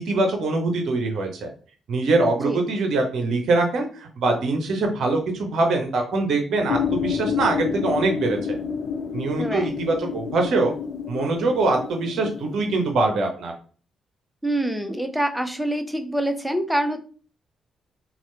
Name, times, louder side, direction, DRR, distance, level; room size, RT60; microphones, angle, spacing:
voice 1, 0.0-1.5 1.9-8.4 9.1-10.7 11.1-13.5, right 2 dB, 65° right, 3 dB, 0.7 m, -23 dB
sound 1, 6.7-12.9, left 7 dB, 60° left, 0.4 m, -29 dB
voice 2, 9.4-9.7 14.4-17.0, right 1 dB, 5° right, 7 dB, 0.7 m, -25 dB
2.8 x 2.4 x 3.2 m, 0.39 s
hypercardioid pair, 45°, 0 cm